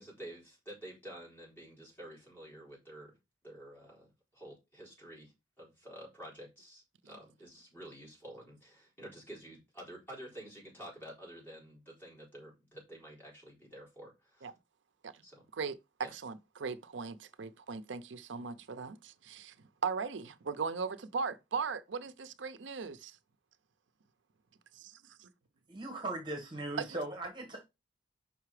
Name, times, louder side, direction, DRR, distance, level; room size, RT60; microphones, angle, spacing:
voice 1, 0.0-3.1 3.4-14.5 15.2-15.4 16.0-16.1, right 1 dB, 10° left, 4.3 m, -50 dB
voice 2, 15.5-19.5 19.8-23.2 26.8-26.9, right 5 dB, 90° right, 0.6 m, -38 dB
voice 3, 25.7-27.7, right 2 dB, 25° right, 1.5 m, -39 dB
5.8 x 5.2 x 4.8 m
head